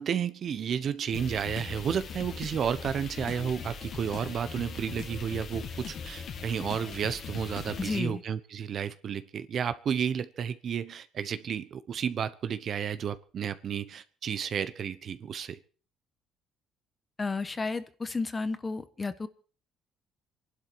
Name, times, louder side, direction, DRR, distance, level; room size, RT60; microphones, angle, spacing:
voice 1, 0.0-15.6, right 8 dB, 50° right, 13 dB, 1.0 m, -32 dB
sound 1, 1.1-8.0, left 6 dB, 50° left, 2.0 m, -40 dB
voice 2, 7.8-8.2 17.2-19.3, left 3 dB, 20° left, 12 dB, 1.2 m, -32 dB
26.5 x 11.5 x 4.6 m, 0.40 s
cardioid pair, 125°, 0 cm